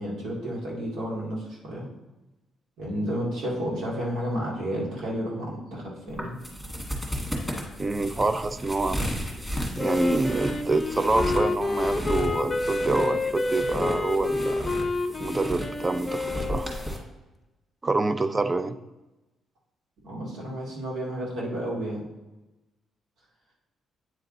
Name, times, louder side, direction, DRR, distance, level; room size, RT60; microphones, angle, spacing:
voice 1, 0.0-1.9 2.8-6.4 20.0-22.0, equal, 80° right, -3 dB, 2.3 m, -31 dB
sound 1, 6.1-17.0, equal, 5° right, 1.9 m, -34 dB
voice 2, 7.8-9.0 9.8-14.7 15.2-16.7 17.8-18.8, right 3 dB, 25° right, 12 dB, 0.4 m, -26 dB
Wind instrument woodwind instrument, 9.8-16.9, left 3 dB, 20° left, 0.7 m, -29 dB
9.1 x 3.5 x 3.9 m, 1.1 s
cardioid pair, 90°, 0 cm